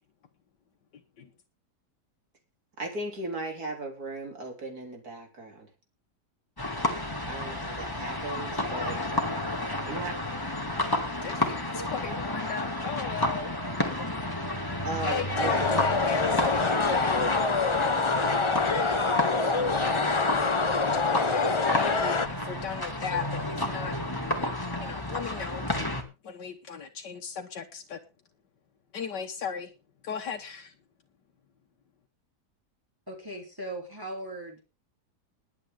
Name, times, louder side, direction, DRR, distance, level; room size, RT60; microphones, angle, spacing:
voice 1, 2.8-5.7 7.2-9.0 9.8-10.2 14.8-15.8, right 2 dB, 60° right, 2 dB, 3.8 m, -36 dB
sound 1, 6.6-26.0, left 1 dB, 10° left, 2.3 m, -31 dB
voice 2, 11.2-13.5 14.0-14.1 15.1-18.4 19.0-19.1 20.7-24.0 24.4-24.5 24.8-25.9 26.2-28.0 28.9-29.7 30.0-30.7, left 7 dB, 85° left, 2 dB, 1.9 m, -37 dB
sound 2, 15.4-22.3, left 4 dB, 30° left, 0.5 m, -26 dB
voice 3, 33.1-34.7, right 1 dB, 10° right, -1 dB, 3.5 m, -38 dB
21.0 x 8.6 x 3.8 m, 0.30 s
omnidirectional pair, 1.8 m